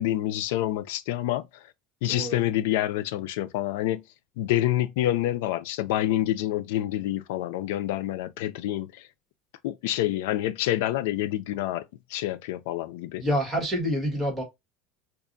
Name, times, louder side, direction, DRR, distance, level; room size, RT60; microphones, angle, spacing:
voice 1, 0.0-1.4 2.0-4.0 4.4-9.1 9.6-11.8 12.1-13.2, left 13 dB, 80° left, 0.4 m, -27 dB
voice 2, 13.2-14.4, equal, 10° right, 1.7 m, -27 dB
4.7 x 2.5 x 2.5 m
cardioid pair, 165°, 0 cm